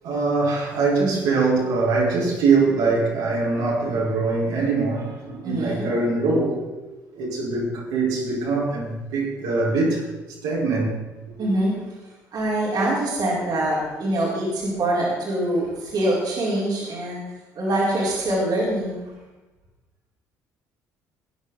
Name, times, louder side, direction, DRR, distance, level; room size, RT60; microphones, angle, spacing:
voice 1, 0.0-6.6 7.1-10.0 10.4-11.0, right 3 dB, 70° right, 5.1 m, -22 dB
voice 2, 5.4-5.9 11.4-11.7 12.3-17.2 17.5-19.0, right 1 dB, 50° right, 4.6 m, -24 dB
19.5 x 10.5 x 4.1 m
hypercardioid pair, 50°, 8 cm